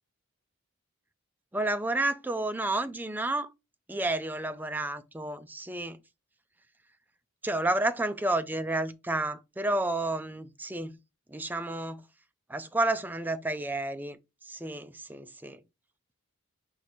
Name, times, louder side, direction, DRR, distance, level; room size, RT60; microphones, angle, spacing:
voice 1, 1.5-3.5 3.9-6.0 7.4-11.0 11.3-12.1 12.5-15.6, right 2 dB, 10° right, 0.3 m, -31 dB
4.6 x 2.7 x 4.2 m
head